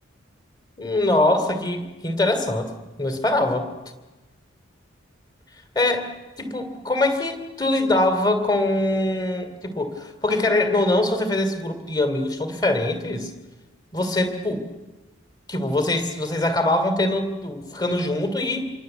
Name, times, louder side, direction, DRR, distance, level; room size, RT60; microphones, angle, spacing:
voice 1, 0.8-2.7 3.0-3.7 5.7-6.1 6.4-13.3 13.9-14.6 15.5-18.7, left 2 dB, 20° left, 8 dB, 3.0 m, -23 dB
27.5 x 23.5 x 8.1 m, 1.2 s
head